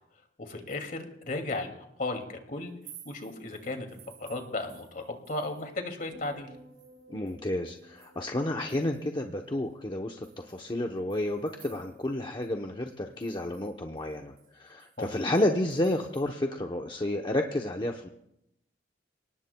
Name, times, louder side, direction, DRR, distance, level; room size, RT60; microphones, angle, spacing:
voice 1, 0.4-1.7 2.0-2.7 3.0-3.9 4.2-6.5 15.0-15.1, left 2 dB, 50° left, 5 dB, 2.4 m, -35 dB
sound 1, 2.7-5.7 6.0-9.2 9.6-9.7 10.2-12.2 12.4-12.5 12.9-16.3, right 9 dB, 55° right, 4.3 m, -56 dB
sound 2, 6.1-10.5 10.8-11.2, equal, 70° right, 5.6 m, -56 dB
voice 2, 7.1-18.1, left 1 dB, 25° left, 2 dB, 0.8 m, -31 dB
29.5 x 18.5 x 2.2 m, 0.80 s
head